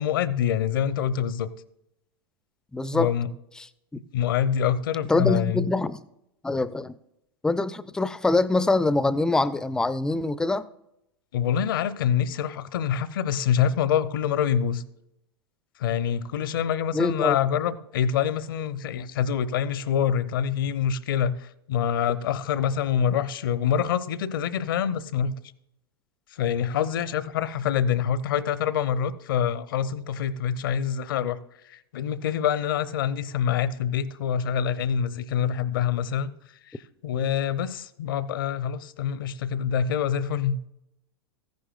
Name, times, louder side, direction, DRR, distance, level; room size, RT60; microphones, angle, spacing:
voice 1, 0.0-1.5 2.7-3.3 4.1-5.7 11.3-14.8 15.8-25.4 26.3-31.4 31.7-36.3 36.7-36.8 37.0-40.6, left 8 dB, 60° left, 0.6 m, -26 dB
voice 2, 2.7-3.1 5.1-6.0 6.4-6.9 7.4-10.7 16.9-17.4, left 2 dB, 5° left, 0.4 m, -24 dB
14.0 x 10.5 x 2.3 m
figure-of-eight pair, 95°, 13 cm